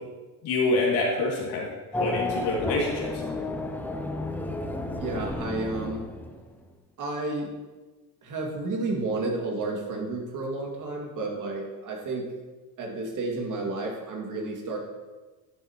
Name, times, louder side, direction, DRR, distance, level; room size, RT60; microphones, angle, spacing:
voice 1, 0.4-1.7 1.9-3.2, left 2 dB, 60° left, -3 dB, 2.4 m, -26 dB
Race car auto racing / Accelerating revving vroom, 1.9-6.6, left 2 dB, 5° left, 0.5 m, -32 dB
voice 2, 5.0-6.0 7.0-7.5 8.2-12.3 12.8-14.8, right 2 dB, 45° right, 0 dB, 2.3 m, -31 dB
10.5 x 6.9 x 3.0 m, 1.2 s
supercardioid pair, 100°, 43 cm